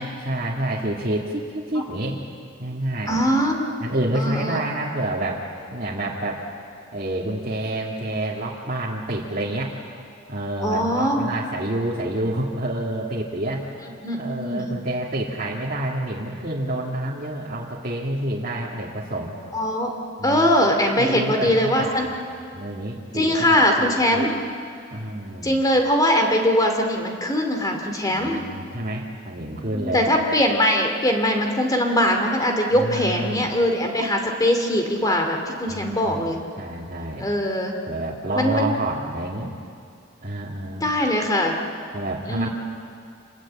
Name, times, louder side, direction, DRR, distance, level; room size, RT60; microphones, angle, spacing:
voice 1, 0.0-2.2 2.6-3.2 3.8-5.4 5.7-6.4 6.9-9.7 10.3-13.7 14.2-19.4 20.2-20.5 21.0-22.1 22.5-24.3 24.9-25.6 28.1-30.0 32.8-33.5 35.7-37.3 37.9-39.5 40.2-40.8 41.9-42.5, right 1 dB, 45° right, -6 dB, 2.5 m, -28 dB
voice 2, 3.1-3.7 4.1-4.6 10.6-11.3 14.0-14.7 19.5-19.9 20.2-22.1 23.1-24.4 25.4-28.4 29.7-36.4 37.2-37.7 38.3-38.7 40.8-41.6 42.3-42.5, equal, 20° left, 3 dB, 2.4 m, -21 dB
28.0 x 21.5 x 8.8 m, 2.4 s
head